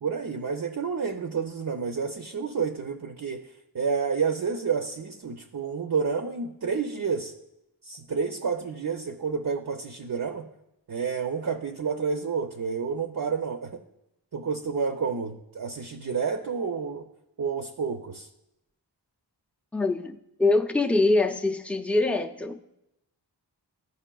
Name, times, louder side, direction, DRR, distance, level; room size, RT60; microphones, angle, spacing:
voice 1, 0.0-3.5 3.7-7.3 7.8-10.5 10.9-13.8 14.3-17.0 17.4-18.3, right 5 dB, 50° right, 5 dB, 0.6 m, -29 dB
voice 2, 19.7-22.6, left 2 dB, 5° left, 5 dB, 0.4 m, -24 dB
13.5 x 5.3 x 2.3 m, 0.86 s
wide cardioid pair, 50°, 43 cm